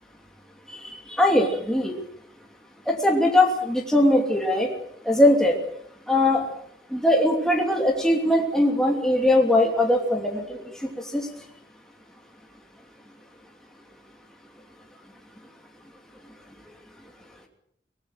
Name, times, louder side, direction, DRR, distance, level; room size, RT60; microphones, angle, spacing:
voice 1, 0.7-1.9 2.9-4.7 5.0-5.5 6.1-6.4 6.9-10.6 11.1-11.3, left 1 dB, 5° left, 0 dB, 2.9 m, -21 dB
23.5 x 19.5 x 6.5 m, 0.72 s
head